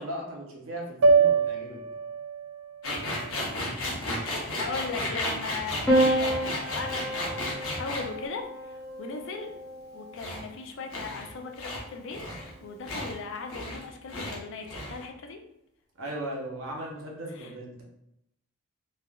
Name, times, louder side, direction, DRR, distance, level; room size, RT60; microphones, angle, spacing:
voice 1, 0.0-1.8 16.0-17.8, right 1 dB, 65° right, -2 dB, 0.7 m, -37 dB
sound 1, 1.0-5.3, right 4 dB, 90° right, 0.4 m, -27 dB
sound 2, 2.8-8.1 10.1-10.4 10.9-11.3 11.6-11.8 12.1-12.5 12.8-13.1 13.5-13.8 14.1-14.4 14.6-15.0, left 1 dB, 75° left, 0.8 m, -33 dB
voice 2, 4.2-9.5 9.9-12.2 12.6-15.4 17.3-17.5, left 4 dB, 60° left, 4 dB, 0.4 m, -38 dB
Piano, 5.9-10.3 11.5-12.2, right 1 dB, 5° left, 0.7 m, -29 dB
3.2 x 2.4 x 2.3 m, 0.80 s
head